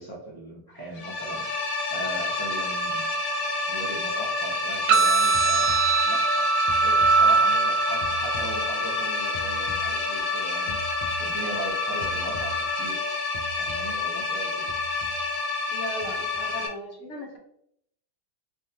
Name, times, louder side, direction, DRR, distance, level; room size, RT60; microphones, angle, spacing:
voice 1, 0.0-1.4 1.9-3.2 3.7-6.5 6.7-10.8 11.2-13.0 13.6-14.7, right 2 dB, 35° right, -4 dB, 0.3 m, -38 dB
sound 1, 0.9-16.7, left 3 dB, 70° left, 0.5 m, -29 dB
sound 2, 4.8-6.4 6.7-9.0 9.3-11.7 12.0-13.1 13.3-14.1 14.7-15.7 16.0-16.5, right 1 dB, 85° left, 1.5 m, -42 dB
sound 3, 4.9-12.9, right 4 dB, 80° right, 1.2 m, -25 dB
voice 2, 15.7-17.4, equal, 50° left, -2 dB, 1.1 m, -37 dB
3.5 x 3.1 x 2.8 m, 0.68 s
omnidirectional pair, 1.9 m